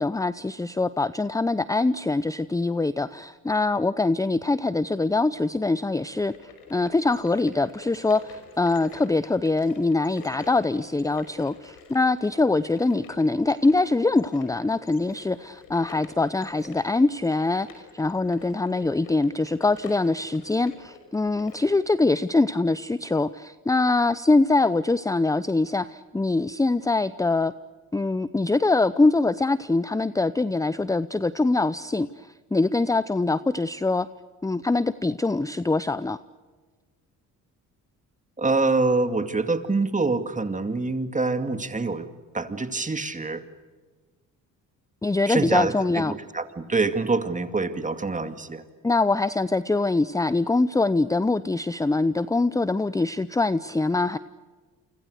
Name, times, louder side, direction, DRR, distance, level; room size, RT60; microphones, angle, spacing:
voice 1, 0.0-6.3 6.7-27.5 27.9-34.1 34.4-36.2 45.0-46.1 48.8-54.2, left 3 dB, 10° left, 15 dB, 0.7 m, -23 dB
sound 1, 5.9-21.8, left 6 dB, 90° left, 5.6 m, -48 dB
voice 2, 38.4-42.1 42.3-43.4 45.3-48.6, right 3 dB, 20° right, 9 dB, 2.4 m, -25 dB
29.0 x 24.5 x 6.6 m, 1.4 s
cardioid pair, 80°, 35 cm